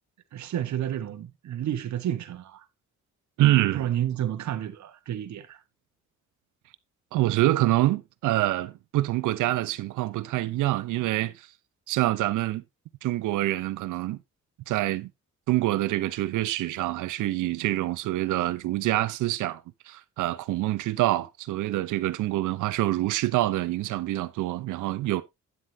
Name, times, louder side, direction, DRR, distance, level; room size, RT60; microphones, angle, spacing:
voice 1, 0.3-2.6 3.7-5.6, right 11 dB, 65° right, 1.3 m, -31 dB
voice 2, 3.4-3.9 7.1-11.5 11.9-12.6 13.0-14.2 14.7-15.1 15.5-25.2, right 16 dB, 85° right, 0.8 m, -26 dB
9.5 x 7.8 x 2.7 m
cardioid pair, 90°, 30 cm